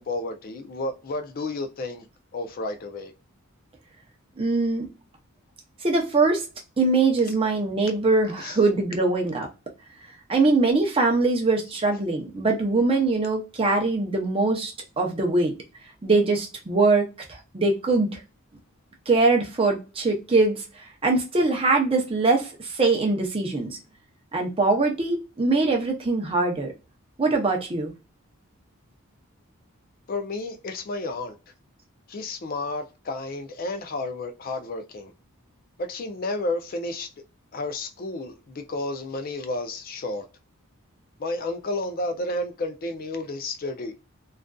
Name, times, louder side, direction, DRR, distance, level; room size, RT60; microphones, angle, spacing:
voice 1, 0.0-2.0 2.3-3.1 8.3-8.6 30.1-31.4 32.1-35.1 35.8-37.1 37.5-40.2 41.2-43.9, left 2 dB, 40° left, 0.4 m, -31 dB
voice 2, 4.4-4.8 5.8-6.4 6.8-9.5 10.3-15.5 16.0-18.2 19.1-20.6 21.0-23.8 24.3-26.7 27.2-27.9, right 3 dB, 25° right, 0.5 m, -22 dB
2.4 x 2.3 x 2.2 m
head